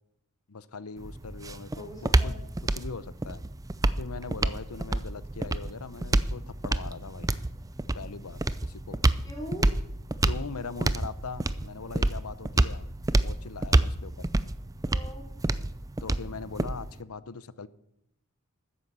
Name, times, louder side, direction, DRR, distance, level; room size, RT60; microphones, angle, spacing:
voice 1, 0.5-2.3 2.8-3.4 4.0-7.3 7.9-9.0 10.3-14.3 16.0-17.7, left 4 dB, 85° left, 0.8 m, -41 dB
sound 1, 1.0-17.0, right 2 dB, 15° right, 0.5 m, -28 dB
voice 2, 1.7-2.4 9.2-9.7 14.9-15.3, equal, 15° left, 3.1 m, -41 dB
13.5 x 9.9 x 7.6 m
head